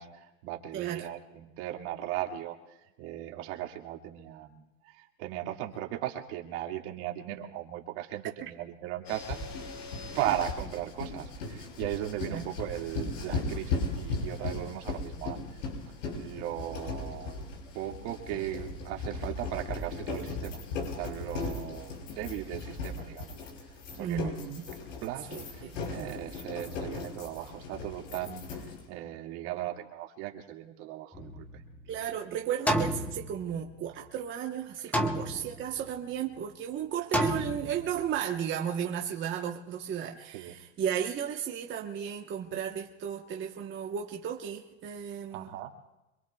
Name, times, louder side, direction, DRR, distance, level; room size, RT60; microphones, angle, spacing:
voice 1, 0.0-2.6 3.0-9.4 10.1-15.6 16.1-17.4 17.7-20.6 21.0-23.4 24.0-24.3 25.0-28.4 28.9-31.6 40.2-40.6 45.3-45.7, right 13 dB, 60° right, 1 dB, 2.3 m, -37 dB
voice 2, 0.7-1.1 8.4-8.5 12.3-12.5 24.0-24.6 25.3-25.8 31.9-45.5, right 9 dB, 30° right, 1 dB, 1.2 m, -34 dB
sound 1, 9.0-28.9, left 3 dB, 85° left, 6.0 m, -37 dB
sound 2, 31.1-32.0 32.7-33.9 34.9-35.9 37.1-38.1, equal, 5° left, 1.1 m, -31 dB
25.5 x 23.0 x 2.4 m, 1.0 s
supercardioid pair, 130°, 38 cm